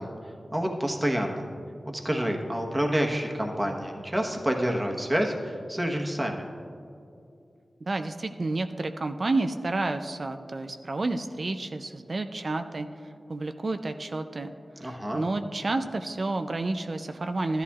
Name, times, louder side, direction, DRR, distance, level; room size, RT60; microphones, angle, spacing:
voice 1, 0.0-1.5 1.8-6.4 14.8-15.2, equal, 15° right, 1 dB, 1.1 m, -28 dB
voice 2, 7.8-17.6, right 2 dB, 50° right, 7 dB, 0.4 m, -30 dB
14.0 x 11.0 x 2.4 m, 2.5 s
wide cardioid pair, 110°, 0 cm